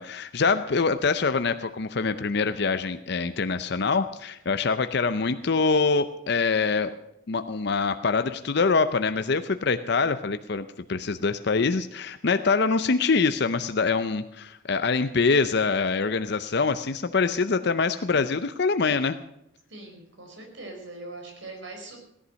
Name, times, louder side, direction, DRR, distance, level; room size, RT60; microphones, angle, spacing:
voice 1, 0.0-6.9 7.3-19.2, left 4 dB, 55° left, 10 dB, 0.6 m, -24 dB
voice 2, 19.7-22.0, right 2 dB, 65° right, 2 dB, 4.8 m, -41 dB
17.0 x 11.0 x 6.3 m, 0.79 s
head